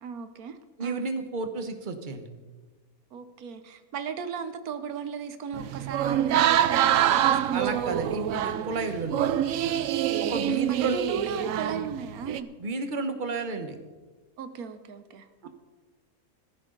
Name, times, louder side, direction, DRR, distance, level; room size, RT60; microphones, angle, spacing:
voice 1, 0.0-1.0 3.1-8.1 10.7-12.5 14.4-15.5, right 6 dB, 90° right, 10 dB, 1.4 m, -36 dB
voice 2, 0.8-2.3 7.5-9.4 10.2-11.0 12.6-13.8 15.4-15.5, right 3 dB, 35° right, 7 dB, 1.3 m, -32 dB
sound 1, 5.5-12.4, right 11 dB, 70° right, 1.0 m, -25 dB
16.0 x 14.0 x 3.9 m, 1.3 s
omnidirectional pair, 1.5 m